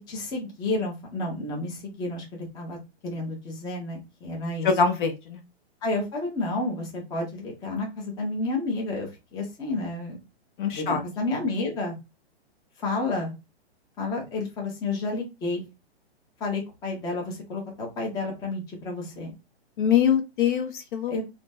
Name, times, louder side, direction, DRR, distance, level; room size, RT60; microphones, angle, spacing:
voice 1, 0.1-2.8 3.0-4.7 5.8-10.2 10.7-12.0 12.8-13.3 14.0-15.6 16.4-19.3 21.1-21.2, left 2 dB, 10° left, 0.6 m, -30 dB
voice 2, 4.6-5.4 10.6-11.0 19.8-21.2, left 7 dB, 50° left, 0.6 m, -23 dB
3.8 x 2.0 x 2.2 m
hypercardioid pair, 145°, 33 cm